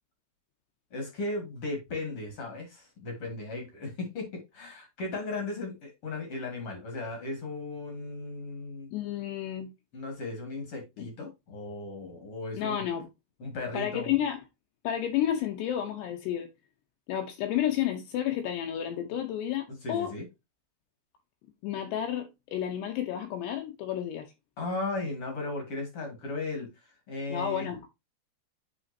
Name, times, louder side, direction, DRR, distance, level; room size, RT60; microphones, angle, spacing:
voice 1, 0.9-8.9 9.9-12.8 13.4-14.1 19.8-20.2 24.6-26.7 27.1-27.7, left 2 dB, 50° left, 1.7 m, -36 dB
voice 2, 8.9-9.7 11.0-11.1 12.6-13.1 13.7-14.4 14.8-16.5 17.1-20.1 21.6-24.3 27.3-27.9, left 10 dB, 75° left, 2.7 m, -31 dB
11.0 x 3.7 x 2.6 m
omnidirectional pair, 5.4 m